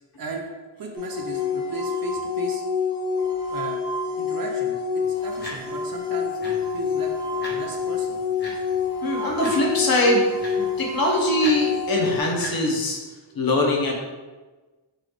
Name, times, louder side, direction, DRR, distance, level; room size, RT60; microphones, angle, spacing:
voice 1, 0.2-0.5 0.8-2.6 3.5-3.8 4.2-8.2 13.3-13.5, right 3 dB, 50° right, 2 dB, 0.5 m, -36 dB
sound 1, 1.0-12.2, left 5 dB, 10° right, 0.7 m, -27 dB
sound 2, 5.0-12.6, equal, 20° left, 1.0 m, -41 dB
voice 2, 9.0-10.3 10.6-13.0 13.3-13.9, left 1 dB, 45° left, -1 dB, 0.8 m, -22 dB
3.9 x 3.1 x 3.2 m, 1.3 s
wide cardioid pair, 145°, 48 cm